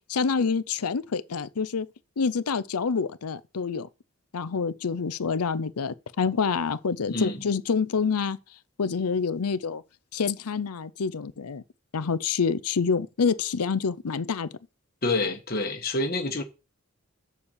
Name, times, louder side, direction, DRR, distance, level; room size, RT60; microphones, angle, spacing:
voice 1, 0.1-1.9 2.2-3.9 4.3-8.4 8.8-9.8 10.1-11.6 11.9-14.5, left 5 dB, 85° left, 0.6 m, -27 dB
voice 2, 7.1-7.4 15.0-16.4, left 2 dB, 45° left, 1.5 m, -27 dB
7.1 x 7.0 x 6.6 m
head